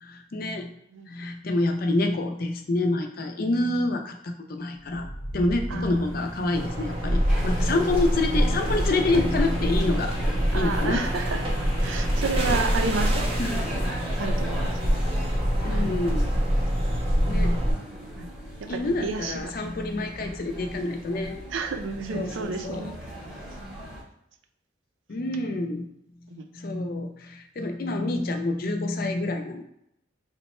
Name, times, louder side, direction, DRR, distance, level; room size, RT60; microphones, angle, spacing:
voice 1, 0.0-0.7 1.1-5.1 5.3-10.1 10.5-11.0 13.4-13.6 15.6-16.3 17.3-17.6 18.7-21.4 22.1-22.9 25.1-25.9 26.5-29.6, left 2 dB, 50° left, 5 dB, 0.4 m, -27 dB
sound 1, 4.7-16.6, equal, 85° left, 0.8 m, -42 dB
sound 2, 6.5-17.7, equal, 30° right, 0.5 m, -25 dB
sound 3, 7.3-24.0, equal, 5° right, 0.8 m, -38 dB
voice 2, 10.5-11.5 11.8-13.3 14.2-14.8 16.3-16.5 17.5-17.8 18.2-18.3 18.6-19.5 21.5-23.0 26.3-26.4, right 4 dB, 80° right, 7 dB, 0.4 m, -31 dB
3.2 x 2.1 x 4.2 m, 0.78 s
head